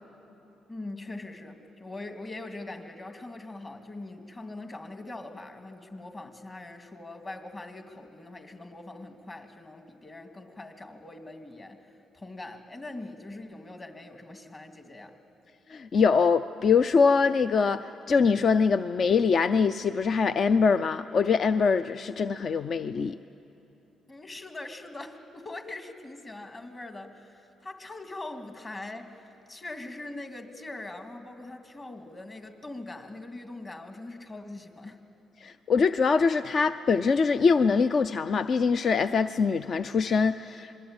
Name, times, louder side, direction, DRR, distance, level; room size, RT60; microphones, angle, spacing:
voice 1, 0.7-15.2 24.1-35.0, left 2 dB, 30° left, 6 dB, 2.3 m, -42 dB
voice 2, 15.7-23.2 35.4-40.8, left 5 dB, 50° left, 12 dB, 0.5 m, -23 dB
27.0 x 21.5 x 8.8 m, 3.0 s
cardioid pair, 90°, 0 cm